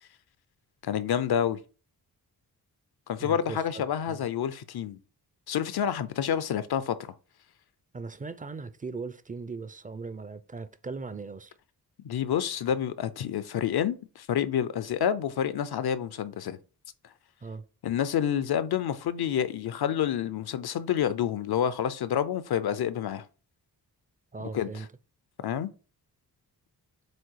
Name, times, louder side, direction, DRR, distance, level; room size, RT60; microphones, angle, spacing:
voice 1, 0.8-1.6 3.1-5.0 5.5-7.1 12.0-16.6 17.8-23.2 24.5-24.7 25.4-25.7, left 9 dB, 75° left, 0.7 m, -28 dB
voice 2, 3.2-3.6 4.1-4.2 7.9-11.5 17.4-17.7 24.3-24.9, right 4 dB, 20° right, 0.5 m, -39 dB
7.7 x 2.7 x 4.7 m
wide cardioid pair, 130°, 39 cm